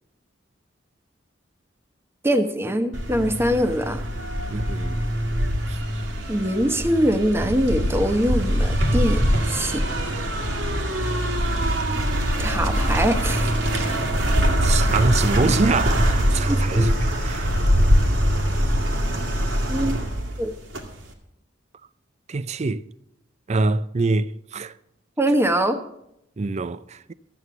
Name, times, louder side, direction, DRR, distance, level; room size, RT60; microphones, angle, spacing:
voice 1, 2.2-4.0 4.4-4.5 6.3-9.8 12.4-13.5 16.5-16.9 19.7-20.0 20.4-20.5 25.2-25.8, equal, 15° right, 0.9 m, -23 dB
sound 1, 2.9-21.1, equal, 80° right, 1.9 m, -23 dB
voice 2, 4.5-5.0 5.7-5.8 14.6-17.5 22.3-22.8 23.5-24.7 26.4-27.1, right 3 dB, 35° right, 0.4 m, -24 dB
12.5 x 8.1 x 7.1 m
head